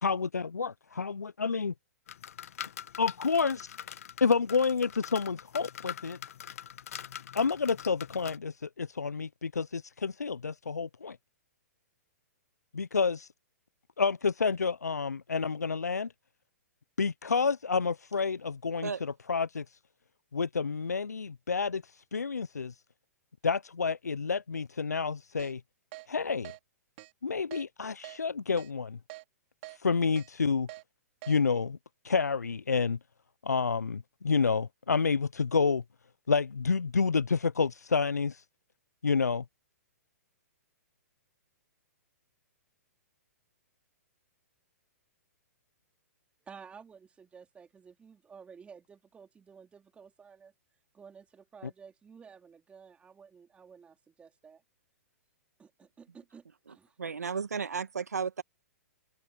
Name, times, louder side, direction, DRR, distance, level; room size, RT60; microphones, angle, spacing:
voice 1, 0.0-1.7 3.0-3.8 4.2-6.2 7.3-11.2 12.7-13.3 14.0-16.1 17.0-19.8 20.3-22.8 23.4-25.6 26.1-26.5 27.2-29.0 29.7-30.7 31.3-31.8 32.0-33.0 33.4-35.8 36.3-38.4 39.0-39.4, left 5 dB, 90° left, 0.5 m, -29 dB
sound 1, 2.1-8.4, left 9 dB, 65° left, 1.4 m, -44 dB
Keyboard (musical), 25.4-25.5 25.9-26.1 26.4-26.6 27.0-27.1 27.5-27.6 28.0-28.2 28.6-28.7 29.1-29.2 29.6-29.8 30.2-30.3 30.7-30.8 31.2-31.4, right 21 dB, 45° right, 3.6 m, -45 dB
voice 2, 46.4-50.5 50.9-54.6 55.6-57.0, right 6 dB, 15° right, 3.4 m, -53 dB
voice 3, 56.7-58.4, right 5 dB, 80° right, 2.0 m, -34 dB
hypercardioid pair, 120°, 9 cm